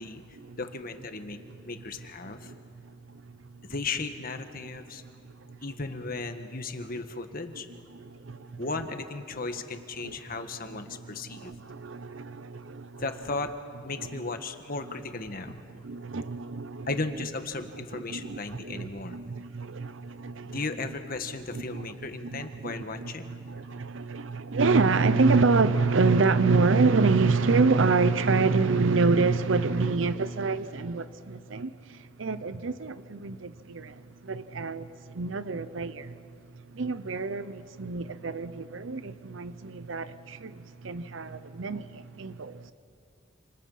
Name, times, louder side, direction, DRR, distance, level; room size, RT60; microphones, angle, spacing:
voice 1, 0.6-1.4 1.6-2.5 3.6-5.0 5.6-7.7 8.6-11.5 13.0-13.5 13.8-15.6 16.9-19.2 20.4-23.4, left 3 dB, 45° left, 1.5 m, -35 dB
voice 2, 2.2-2.9 5.4-5.6 7.9-8.7 10.0-10.1 10.9-13.0 14.0-14.2 15.8-16.9 17.9-20.6 21.5-21.9 22.2-36.2 36.7-42.7, right 4 dB, 70° right, 0.7 m, -27 dB
29.0 x 27.5 x 5.6 m
head